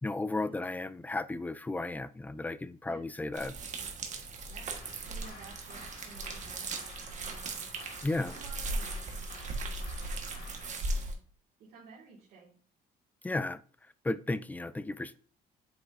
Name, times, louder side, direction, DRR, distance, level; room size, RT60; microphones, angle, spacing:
voice 1, 0.0-3.5 8.0-8.4 13.2-13.6 14.0-15.2, left 2 dB, 10° left, 0.3 m, -34 dB
sound 1, 3.3-11.1, right 2 dB, 45° right, 1.5 m, -38 dB
voice 2, 4.5-11.2 11.6-12.6, right 4 dB, 70° right, 2.1 m, -55 dB
sound 2, 4.7-10.8, left 3 dB, 65° left, 2.5 m, -52 dB
7.8 x 5.8 x 2.6 m
cardioid pair, 110°, 17 cm